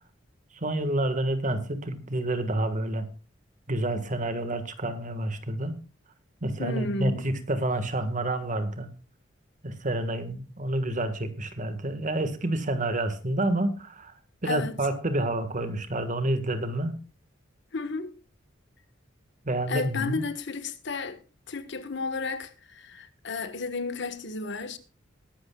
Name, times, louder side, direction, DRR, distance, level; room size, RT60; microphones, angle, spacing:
voice 1, 0.5-3.1 3.7-5.7 6.4-8.9 9.6-14.1 14.4-17.0 19.5-20.2, right 1 dB, 40° right, 1.8 m, -29 dB
voice 2, 6.6-7.2 14.4-14.7 17.7-18.1 19.7-21.2 21.5-24.8, left 3 dB, 65° left, 1.5 m, -32 dB
21.0 x 11.5 x 2.4 m
head